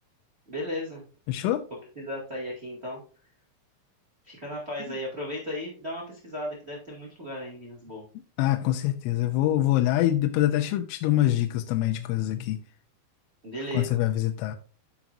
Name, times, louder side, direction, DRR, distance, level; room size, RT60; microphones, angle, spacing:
voice 1, 0.5-1.1 1.9-3.0 4.2-8.0 13.4-14.0, equal, 40° right, 0.8 m, -35 dB
voice 2, 1.3-1.6 8.4-12.6 13.7-14.6, left 14 dB, 90° left, 3.1 m, -25 dB
11.0 x 5.9 x 2.6 m
omnidirectional pair, 5.6 m